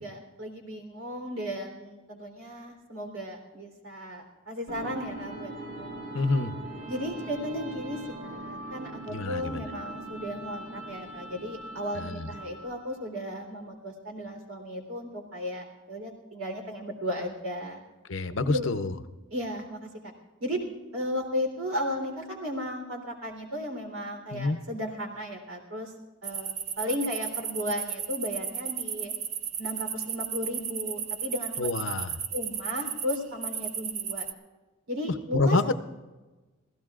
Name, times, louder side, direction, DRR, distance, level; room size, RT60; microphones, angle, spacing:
voice 1, 0.0-5.9 6.9-17.8 18.4-18.7 19.3-19.9 20.4-20.6 20.9-25.9 26.2-29.1 29.6-31.6 32.3-34.3 34.9-35.6, equal, 85° right, 3 dB, 3.6 m, -35 dB
sound 1, 4.7-12.9, right 1 dB, 65° right, 3.6 m, -41 dB
voice 2, 6.1-6.5 9.1-9.6 11.9-12.3 18.1-18.9 24.3-24.6 31.6-32.2 35.3-35.7, left 3 dB, 65° left, 10 dB, 0.8 m, -27 dB
sound 2, 26.2-34.3, right 8 dB, 30° right, 0.6 m, -34 dB
28.0 x 16.0 x 2.5 m, 1.2 s
head